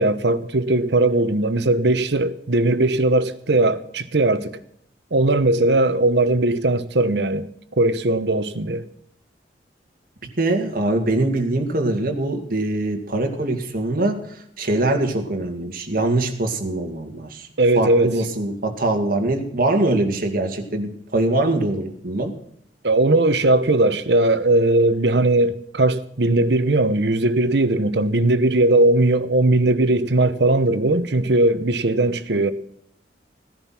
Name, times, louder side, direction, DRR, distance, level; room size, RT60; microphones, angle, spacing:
voice 1, 0.0-4.5 5.1-7.5 7.8-8.8 17.6-18.2 22.8-32.5, right 2 dB, 75° right, 1.0 m, -19 dB
voice 2, 10.4-17.5 17.8-22.3, right 2 dB, 55° right, 2.2 m, -23 dB
16.5 x 10.5 x 5.9 m
head